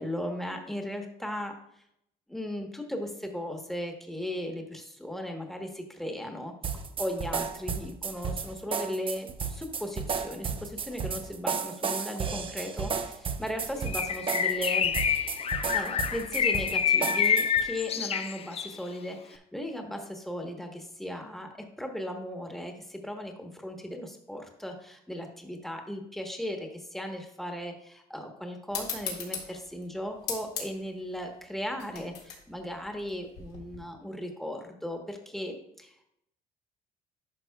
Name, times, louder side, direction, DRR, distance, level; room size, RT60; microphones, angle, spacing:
voice 1, 0.0-1.6 2.3-6.5 7.0-15.0 15.7-35.9, equal, ahead, 3 dB, 1.2 m, -37 dB
sound 1, 6.6-17.7, right 5 dB, 30° right, 0.6 m, -33 dB
Bird, 13.9-18.8, left 7 dB, 35° left, 0.4 m, -27 dB
sound 2, 28.7-33.8, left 6 dB, 90° left, 2.0 m, -39 dB
11.0 x 5.8 x 2.3 m, 0.75 s
cardioid pair, 110°, 17 cm